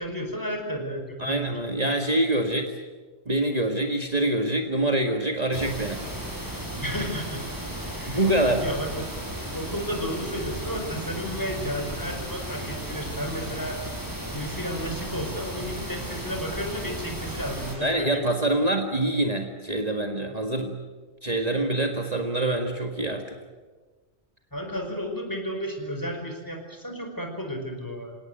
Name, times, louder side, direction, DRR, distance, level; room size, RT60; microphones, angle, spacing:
voice 1, 0.0-1.5 6.8-7.4 7.9-9.1 9.5-13.8 14.3-18.7 24.5-28.2, equal, 20° left, 3 dB, 5.1 m, -33 dB
voice 2, 1.2-2.7 3.3-6.0 8.1-8.6 17.8-20.8 21.2-23.4, right 1 dB, 35° right, 3 dB, 1.9 m, -25 dB
sound 1, 5.5-17.8, right 1 dB, 20° right, 5.5 m, -35 dB
28.0 x 18.0 x 9.1 m, 1.3 s
omnidirectional pair, 1.1 m